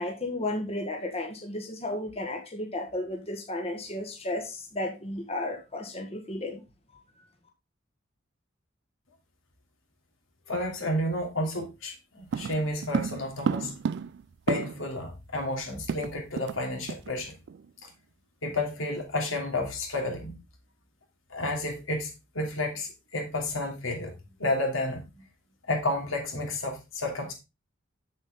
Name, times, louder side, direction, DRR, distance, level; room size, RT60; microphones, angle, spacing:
voice 1, 0.0-6.6, left 1 dB, 30° left, 1.5 m, -33 dB
voice 2, 10.5-13.8 14.5-17.3 18.4-20.4 21.3-24.1 24.4-25.2 25.7-27.3, left 1 dB, 80° left, 2.8 m, -31 dB
sound 1, 12.3-15.0 15.3-15.4 15.6-16.6 16.9-17.1 17.5-17.7, right 6 dB, 60° right, 0.3 m, -32 dB
7.4 x 7.3 x 3.7 m
head